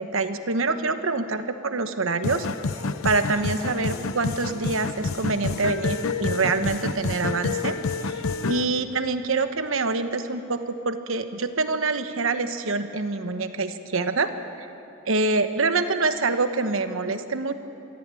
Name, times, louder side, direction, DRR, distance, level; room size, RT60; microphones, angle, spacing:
voice 1, 0.0-2.5 3.0-7.8 8.1-8.2 8.5-14.3 14.6-14.7 15.1-17.5, right 3 dB, 70° right, 9 dB, 1.1 m, -25 dB
sound 1, 2.2-8.6, left 4 dB, 85° left, 0.7 m, -28 dB
22.5 x 14.5 x 8.4 m, 2.9 s
head